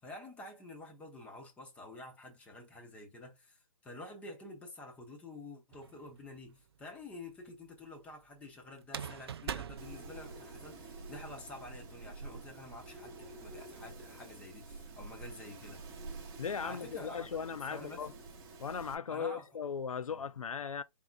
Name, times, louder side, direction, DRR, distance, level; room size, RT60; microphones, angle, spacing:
voice 1, 0.0-15.8 16.6-17.4 17.7-18.1 19.1-19.5 20.1-20.2, left 2 dB, 5° left, 0.7 m, -49 dB
sound 1, 5.7-6.4 8.8-10.8, right 8 dB, 45° right, 0.4 m, -42 dB
Wind, 9.8-18.9, right 3 dB, 15° right, 0.9 m, -49 dB
voice 2, 16.4-18.1 18.6-20.8, left 6 dB, 75° left, 0.5 m, -38 dB
4.5 x 3.6 x 2.3 m
figure-of-eight pair, 145°, 18 cm